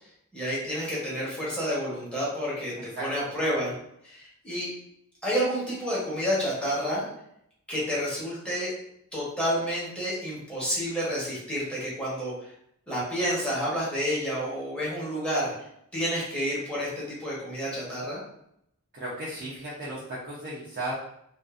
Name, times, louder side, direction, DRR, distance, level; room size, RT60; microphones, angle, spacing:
voice 1, 0.3-3.7 4.0-4.7 5.2-7.0 7.7-8.7 9.1-12.5 12.9-15.5 15.9-18.2, equal, 5° left, -8 dB, 1.0 m, -29 dB
voice 2, 3.0-3.3 18.9-20.9, right 1 dB, 45° right, -7 dB, 0.6 m, -35 dB
2.5 x 2.4 x 2.4 m, 0.74 s
head